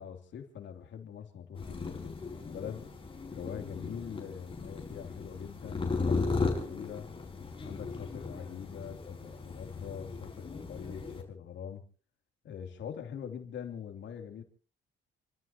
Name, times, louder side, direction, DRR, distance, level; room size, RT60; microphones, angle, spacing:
voice 1, 0.0-2.8 3.3-7.1 7.6-11.8 12.4-14.4, left 8 dB, 70° left, 4 dB, 2.9 m, -43 dB
sound 1, 1.5-11.2, left 3 dB, 25° left, 5.1 m, -36 dB
30.0 x 13.5 x 2.9 m, 0.39 s
cardioid pair, 90°, 20 cm